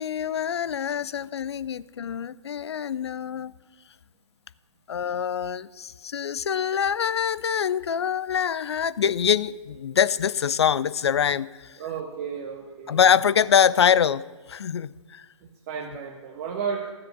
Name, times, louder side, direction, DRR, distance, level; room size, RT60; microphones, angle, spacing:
voice 1, 0.0-3.5 4.9-11.8 12.9-15.3, left 8 dB, 55° left, 19 dB, 0.4 m, -24 dB
voice 2, 11.8-13.0 15.7-16.9, right 6 dB, 30° right, 2 dB, 0.8 m, -32 dB
13.0 x 7.6 x 5.9 m, 1.5 s
figure-of-eight pair, 135°, 17 cm